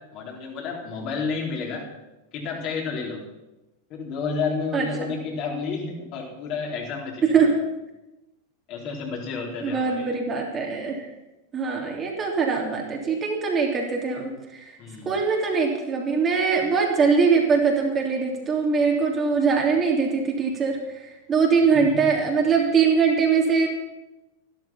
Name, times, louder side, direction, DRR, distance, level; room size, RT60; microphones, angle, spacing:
voice 1, 0.1-1.9 2.3-3.2 3.9-7.4 8.7-10.2 14.8-15.2 21.7-22.1, left 4 dB, 40° left, -1 dB, 4.0 m, -31 dB
voice 2, 9.6-11.0 11.5-14.6 15.0-20.8 21.3-23.7, right 5 dB, 25° right, 0 dB, 3.1 m, -22 dB
14.5 x 12.5 x 5.8 m, 1.0 s
figure-of-eight pair, 90°, 0 cm